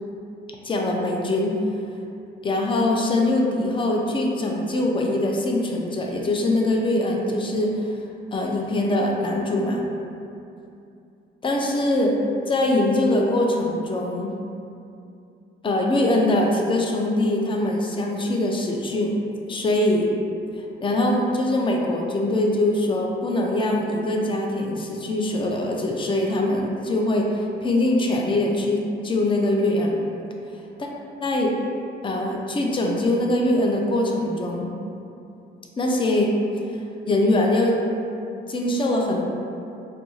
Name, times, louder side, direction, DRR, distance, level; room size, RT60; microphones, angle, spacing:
voice 1, 0.6-1.6 2.4-8.0 8.3-9.9 11.4-12.2 12.5-14.3 15.6-19.2 19.5-20.1 20.6-30.0 31.2-31.5 32.0-34.7 35.8-36.3 36.7-36.8 37.1-37.8 38.5-39.3, left 1 dB, 25° left, 0 dB, 0.4 m, -22 dB
2.5 x 2.3 x 2.9 m, 2.6 s
cardioid pair, 90°, 20 cm